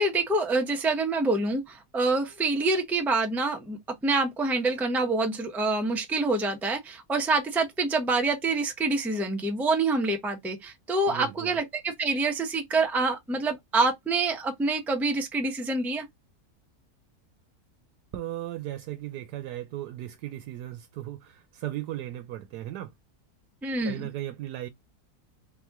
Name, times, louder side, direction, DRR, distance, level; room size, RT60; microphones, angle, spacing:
voice 1, 0.0-16.0 23.6-24.0, right 3 dB, ahead, 0.5 m, -26 dB
voice 2, 11.1-11.6 18.1-22.9 23.8-24.7, right 13 dB, 85° right, 1.2 m, -36 dB
4.1 x 3.0 x 3.6 m
omnidirectional pair, 1.7 m